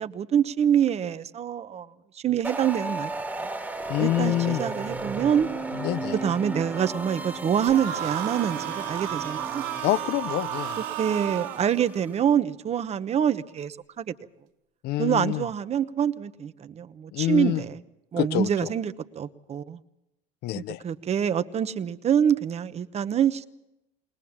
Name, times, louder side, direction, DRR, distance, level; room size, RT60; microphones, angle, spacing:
voice 1, 0.0-1.9 2.1-3.1 3.4-3.5 4.0-5.5 6.2-9.6 11.0-14.1 15.0-17.8 18.1-19.8 20.5-23.5, right 8 dB, 30° right, 12 dB, 1.0 m, -26 dB
sound 1, 2.4-12.1, right 2 dB, 10° right, 1.7 m, -34 dB
voice 2, 3.9-4.6 5.7-6.2 9.8-10.8 14.8-15.5 17.1-17.6 18.2-18.7 20.4-20.8, left 15 dB, 55° left, 19 dB, 0.7 m, -26 dB
sound 2, 7.6-11.6, right 19 dB, 75° right, 0.9 m, -33 dB
21.0 x 20.5 x 7.3 m, 0.91 s
supercardioid pair, 115°, 20 cm